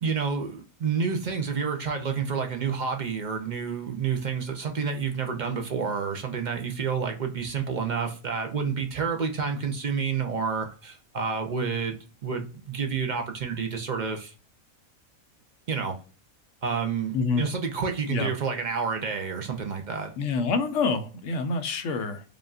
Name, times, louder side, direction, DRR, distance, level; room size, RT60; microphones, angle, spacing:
voice 1, 0.0-14.3 15.7-15.9 16.6-20.1, right 6 dB, 50° right, 0.5 m, -29 dB
voice 2, 20.2-22.2, left 4 dB, 65° left, 1.0 m, -27 dB
4.9 x 2.5 x 2.4 m
omnidirectional pair, 1.5 m